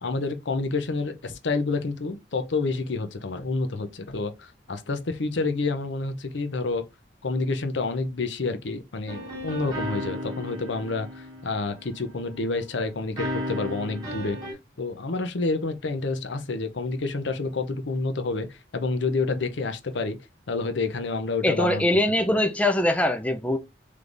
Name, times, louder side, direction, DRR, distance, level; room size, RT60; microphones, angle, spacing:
voice 1, 0.0-6.8 7.2-14.4 14.8-20.2 20.5-21.8, left 3 dB, 80° left, 0.7 m, -28 dB
sound 1, 9.1-12.3 13.2-14.5, equal, 25° right, 2.1 m, -34 dB
voice 2, 21.4-23.6, left 1 dB, 5° left, 0.4 m, -22 dB
3.9 x 3.3 x 3.3 m
head